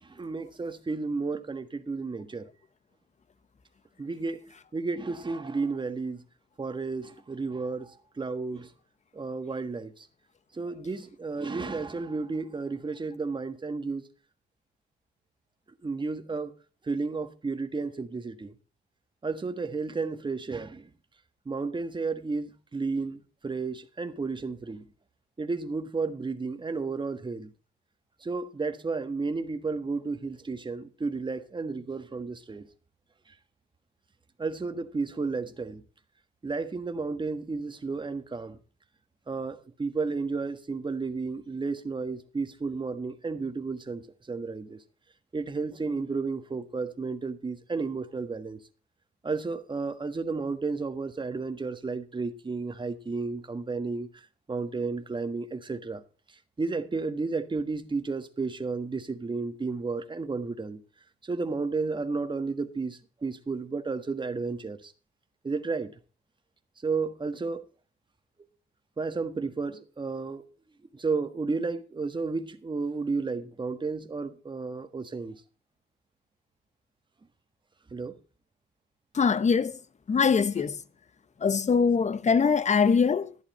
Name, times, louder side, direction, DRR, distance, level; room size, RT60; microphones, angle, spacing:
voice 1, 0.0-2.5 4.0-6.2 6.6-8.7 9.1-10.1 10.5-14.1 15.8-16.5 16.8-18.5 19.2-20.9 21.4-24.9 25.4-27.5 28.2-32.7 34.4-35.8 36.4-38.6 39.3-44.8 45.3-48.6 49.2-54.2 54.5-56.0 56.6-60.8 61.2-64.9 65.4-65.9 66.8-67.7 69.0-70.5 70.9-75.4 77.9-78.2, right 4 dB, 25° right, 1.5 m, -32 dB
voice 2, 79.1-79.8 80.1-80.8 81.4-83.4, left 5 dB, 35° left, 1.0 m, -23 dB
12.0 x 10.5 x 4.3 m
cardioid pair, 90°, 20 cm